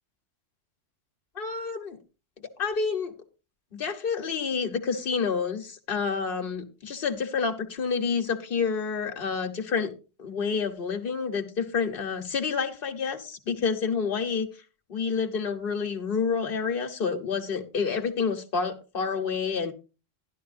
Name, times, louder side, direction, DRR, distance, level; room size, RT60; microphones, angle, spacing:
voice 1, 1.3-2.0 2.4-3.1 3.7-9.9 10.2-14.5 14.9-19.7, left 5 dB, 55° left, 6 dB, 1.2 m, -29 dB
12.0 x 11.5 x 2.5 m, 0.31 s
omnidirectional pair, 1.2 m